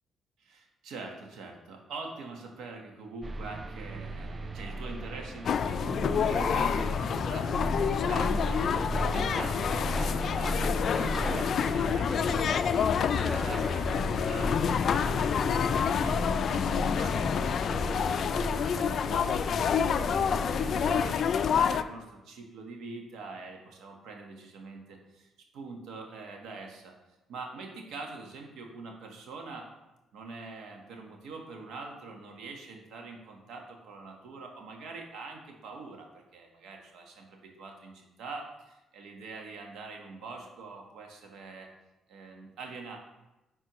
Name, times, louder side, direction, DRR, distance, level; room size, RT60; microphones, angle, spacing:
voice 1, 0.4-26.9 27.3-29.7 30.1-41.7 42.1-43.0, right 3 dB, 80° right, 2 dB, 1.2 m, -44 dB
sound 1, 3.2-21.1, right 1 dB, 30° right, 0.4 m, -37 dB
sound 2, 5.5-21.8, left 7 dB, 60° left, 0.3 m, -28 dB
Scratching (performance technique), 8.6-10.5 10.9-12.5 13.2-13.9, left 1 dB, 5° right, 1.6 m, -36 dB
10.5 x 4.3 x 3.0 m, 0.99 s
cardioid pair, 90°, 0 cm